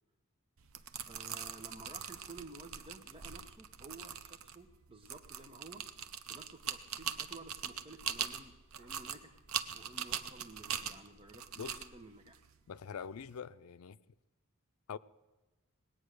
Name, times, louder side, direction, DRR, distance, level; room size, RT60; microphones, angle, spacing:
sound 1, 0.6-13.3, right 8 dB, 85° right, 0.7 m, -42 dB
voice 1, 1.1-5.9 6.2-9.4 9.7-12.4, right 2 dB, 25° right, 1.0 m, -53 dB
voice 2, 12.7-14.0 14.9-15.0, left 6 dB, 85° left, 0.4 m, -44 dB
19.5 x 8.8 x 6.6 m
head